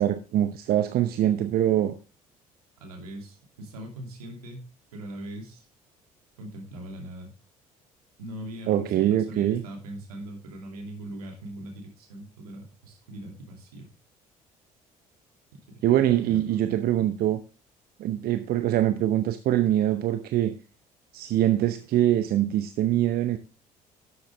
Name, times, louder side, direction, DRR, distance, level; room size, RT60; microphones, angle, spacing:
voice 1, 0.0-2.0 8.7-9.6 15.8-17.4 18.0-20.5 21.1-23.4, right 12 dB, 55° right, 0.8 m, -23 dB
voice 2, 2.8-5.7 6.4-7.4 8.2-13.9 15.7-16.0 16.3-16.8, right 1 dB, 80° right, 2.6 m, -41 dB
11.5 x 7.6 x 3.5 m
figure-of-eight pair, 55°, 19 cm